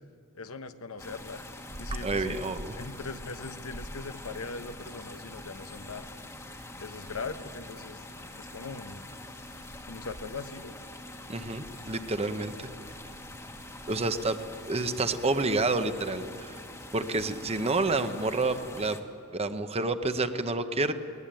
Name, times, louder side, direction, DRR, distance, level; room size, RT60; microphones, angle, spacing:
voice 1, 0.3-1.4 1.8-2.4 2.8-6.1 6.8-8.0 8.4-9.1 9.9-10.8, left 4 dB, 75° left, 10 dB, 1.1 m, -40 dB
sound 1, 1.0-19.0, left 1 dB, 15° left, 1.5 m, -45 dB
sound 2, 1.7-18.1, equal, 60° right, 3.4 m, -49 dB
voice 2, 2.0-2.8 11.3-12.7 13.9-14.4 14.7-16.6 16.9-19.0 19.3-20.9, right 3 dB, 30° right, 10 dB, 1.0 m, -29 dB
20.5 x 20.0 x 9.1 m, 2.7 s
head